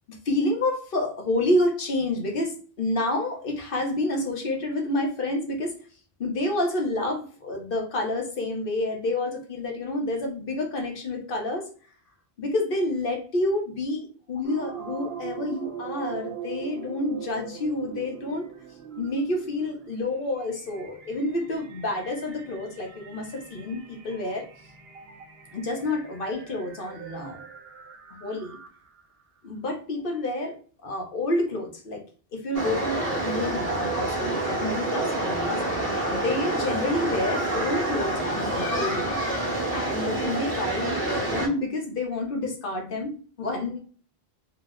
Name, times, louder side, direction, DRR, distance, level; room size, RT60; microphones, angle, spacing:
voice 1, 0.1-5.7 6.2-11.7 12.4-18.5 19.0-24.5 25.5-27.4 28.1-28.6 29.4-32.0 32.3-35.6 36.1-39.2 39.7-43.8, left 2 dB, 60° left, 2 dB, 0.9 m, -29 dB
sound 1, 14.4-29.0, right 9 dB, 75° right, 0.8 m, -41 dB
sound 2, 32.5-41.5, right 1 dB, 40° right, 1.0 m, -27 dB
2.7 x 2.0 x 3.5 m, 0.42 s
omnidirectional pair, 1.0 m